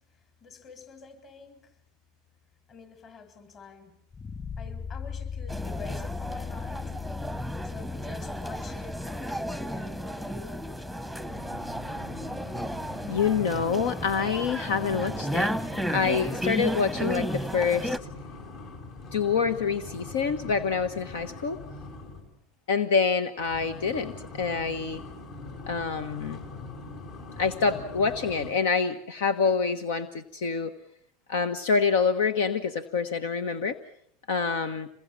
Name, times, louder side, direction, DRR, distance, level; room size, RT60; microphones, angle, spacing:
voice 1, 0.1-1.8 2.7-4.0 4.6-7.0 7.3-11.4, left 5 dB, 40° left, 7 dB, 7.7 m, -47 dB
sound 1, 4.1-13.1, left 6 dB, 25° left, 4.5 m, -40 dB
sound 2, 5.5-18.0, right 1 dB, ahead, 1.0 m, -33 dB
sound 3, 11.2-22.3 23.4-28.5, left 2 dB, 60° left, 6.4 m, -42 dB
voice 2, 13.1-18.0 19.1-21.6 22.7-25.0 25.7-26.4 27.4-30.7 31.3-33.8 34.3-34.9, left 5 dB, 80° left, 9 dB, 1.3 m, -26 dB
27.5 x 22.0 x 7.5 m, 0.70 s
hypercardioid pair, 95°, 0 cm